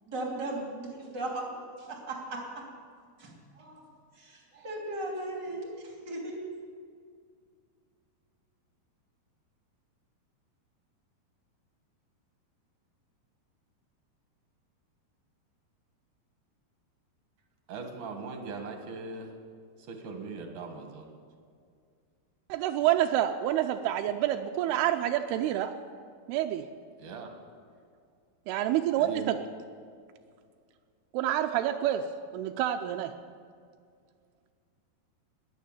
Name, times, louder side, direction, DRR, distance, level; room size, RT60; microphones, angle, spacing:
voice 1, 0.1-2.7 3.2-3.9 4.2-6.4, right 2 dB, 30° right, -1 dB, 3.1 m, -37 dB
voice 2, 17.7-19.3 19.9-21.1 27.0-27.3 29.0-29.3, right 4 dB, 60° right, 4 dB, 2.7 m, -40 dB
voice 3, 22.5-25.7 26.3-26.7 28.5-29.4 31.1-33.1, right 12 dB, 85° right, 6 dB, 2.6 m, -28 dB
20.5 x 9.2 x 7.1 m, 2.2 s
omnidirectional pair, 4.6 m